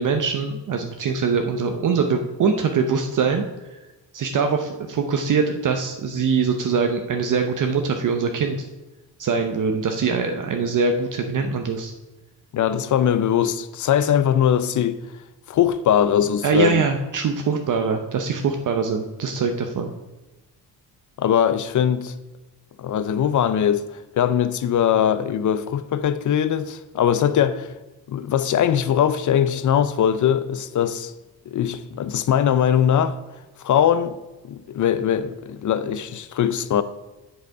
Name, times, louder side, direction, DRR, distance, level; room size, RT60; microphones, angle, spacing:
voice 1, 0.0-3.4 3.7-3.8 4.1-8.7 9.2-11.9 16.4-19.9, right 5 dB, 50° right, 0.7 m, -23 dB
voice 2, 12.5-15.0 15.5-16.8 21.2-22.1 22.8-27.7 28.1-31.1 31.5-33.2 33.6-34.2 34.4-36.8, left 9 dB, 45° left, 0.6 m, -21 dB
7.9 x 6.7 x 4.7 m
cardioid pair, 130°, 41 cm